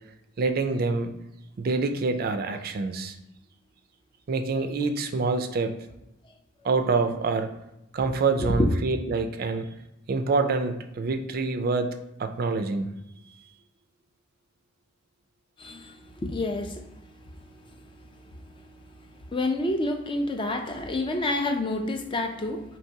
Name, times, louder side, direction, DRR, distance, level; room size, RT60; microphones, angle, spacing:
voice 1, 0.4-1.1 1.6-3.2 4.3-5.8 6.6-7.5 7.9-9.7 10.1-11.9 12.2-12.9, right 3 dB, 50° right, 8 dB, 0.4 m, -26 dB
voice 2, 15.6-15.9 16.2-16.8 19.3-22.6, left 1 dB, 25° left, 4 dB, 0.4 m, -28 dB
4.5 x 3.0 x 2.7 m, 0.90 s
head